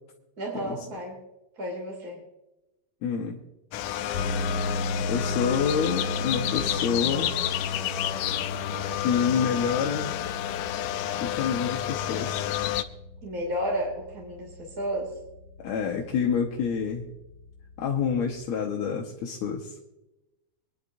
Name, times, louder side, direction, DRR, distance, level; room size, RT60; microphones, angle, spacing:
voice 1, 0.4-1.2 1.6-2.2 13.2-15.1, equal, 25° right, -2 dB, 2.6 m, -32 dB
voice 2, 3.0-3.4 5.1-7.3 8.9-10.1 11.2-12.5 15.6-17.1 17.8-19.7, left 6 dB, 70° left, 0 dB, 1.7 m, -28 dB
sound 1, 3.7-12.8, left 12 dB, 85° left, 1.9 m, -30 dB
sound 2, 4.1-18.4, left 1 dB, 45° left, 3.6 m, -36 dB
25.5 x 11.0 x 2.7 m, 0.96 s
omnidirectional pair, 4.4 m